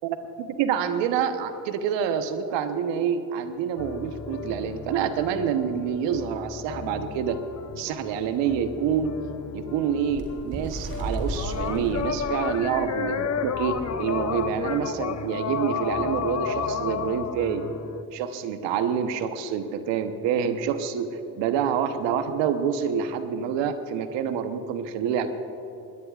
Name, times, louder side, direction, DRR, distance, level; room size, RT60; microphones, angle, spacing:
voice 1, 0.0-7.4 7.8-9.2 9.5-17.6 18.1-25.3, right 8 dB, 75° right, 9 dB, 1.1 m, -27 dB
sound 1, 3.8-18.0, left 6 dB, 35° left, 0.9 m, -32 dB
Bird, 10.1-13.3 13.8-13.9 14.2-14.5 15.2-15.3, right 2 dB, 50° right, 3.5 m, -34 dB
21.0 x 18.0 x 2.5 m, 2.9 s
hypercardioid pair, 55°, 44 cm